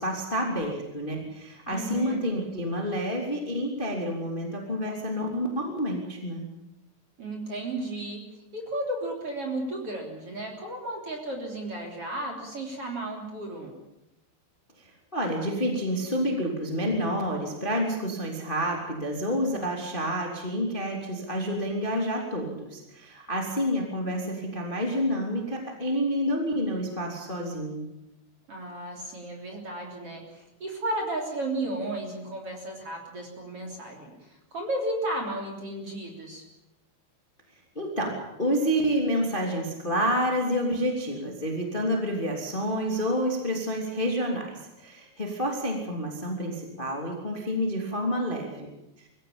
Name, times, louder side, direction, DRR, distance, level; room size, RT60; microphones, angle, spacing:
voice 1, 0.0-6.4 14.8-27.8 37.7-48.7, equal, 15° left, 1 dB, 2.5 m, -29 dB
voice 2, 1.7-2.2 7.2-8.2 8.5-13.7 28.5-36.4, right 1 dB, 35° right, 1 dB, 3.9 m, -34 dB
23.5 x 16.0 x 8.8 m, 0.93 s
omnidirectional pair, 5.5 m